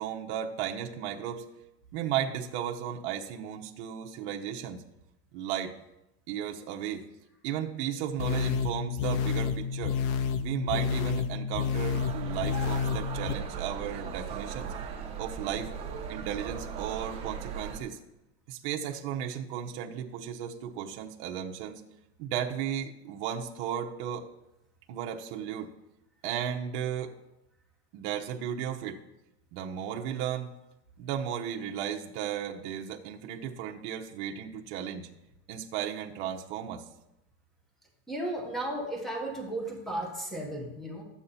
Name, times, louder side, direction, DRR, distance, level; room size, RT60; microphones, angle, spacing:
voice 1, 0.0-1.4 1.9-4.8 5.3-5.7 6.3-7.0 7.4-10.0 10.4-14.7 15.2-15.7 16.1-18.0 18.5-21.8 22.2-24.2 24.9-25.7 26.2-27.1 27.9-29.0 29.5-30.5 31.0-35.1 35.5-36.8, right 9 dB, 50° right, 1 dB, 0.9 m, -35 dB
sound 1, 8.2-13.3, left 7 dB, 35° left, 0.4 m, -30 dB
sound 2, 11.9-17.8, right 6 dB, 15° right, 1.3 m, -38 dB
voice 2, 38.1-41.0, right 1 dB, ahead, 1 dB, 1.3 m, -34 dB
12.5 x 8.5 x 4.2 m, 0.91 s
supercardioid pair, 165°, 35 cm